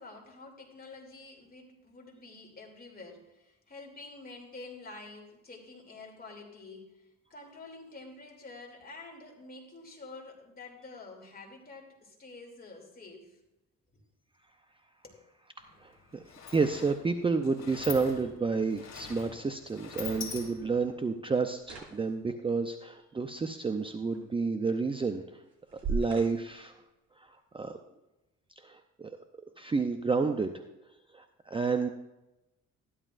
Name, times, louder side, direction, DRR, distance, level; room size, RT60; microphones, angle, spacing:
voice 1, 0.0-13.4 15.0-15.2, left 3 dB, 30° left, 0 dB, 2.8 m, -48 dB
Sliding door, 15.6-15.7 16.0-20.9, left 6 dB, 60° left, 2.5 m, -44 dB
voice 2, 15.6-16.2 16.5-25.4 25.7-26.8 27.2-27.8 28.6-29.1 29.6-30.6 31.1-31.9, right 4 dB, 15° right, 6 dB, 0.5 m, -30 dB
sound 1, 17.1-27.7, right 4 dB, 65° right, 4.3 m, -44 dB
13.0 x 11.0 x 2.5 m, 0.98 s
cardioid pair, 90°, 30 cm